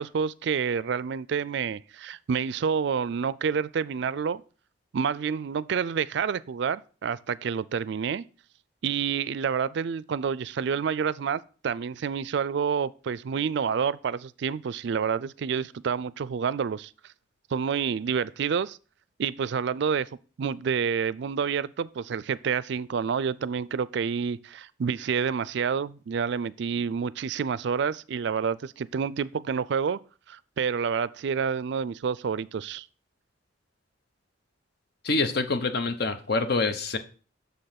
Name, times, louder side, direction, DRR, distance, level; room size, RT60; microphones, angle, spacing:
voice 1, 0.0-4.4 4.9-8.2 8.8-16.9 17.5-18.8 19.2-20.1 20.4-30.0 30.3-32.9, right 6 dB, 60° right, 0.4 m, -28 dB
voice 2, 35.0-37.0, left 3 dB, 55° left, 0.9 m, -26 dB
6.7 x 5.4 x 5.8 m
head